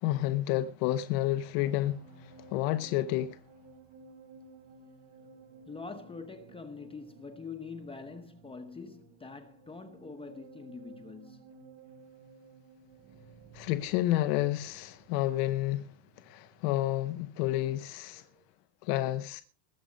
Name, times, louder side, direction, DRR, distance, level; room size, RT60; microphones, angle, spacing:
voice 1, 0.0-3.4 13.5-15.9 16.2-18.2 18.8-19.4, left 14 dB, 90° left, 1.2 m, -30 dB
sound 1, 1.2-17.9 18.1-18.4, right 4 dB, 70° right, 3.6 m, -55 dB
voice 2, 5.7-11.5, left 4 dB, 10° left, 1.1 m, -44 dB
21.0 x 7.9 x 5.2 m
cardioid pair, 155°, 45 cm